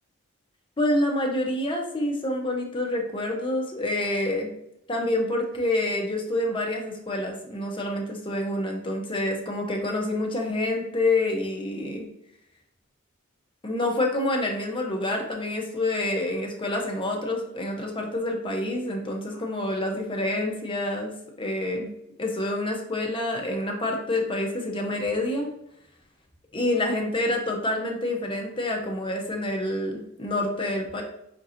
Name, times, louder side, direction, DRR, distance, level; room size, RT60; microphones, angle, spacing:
voice 1, 0.8-4.5 4.9-12.1 13.6-21.1 21.4-21.9 22.2-25.5 26.5-31.0, left 1 dB, 25° left, 1 dB, 0.7 m, -27 dB
5.2 x 2.8 x 2.5 m, 0.78 s
head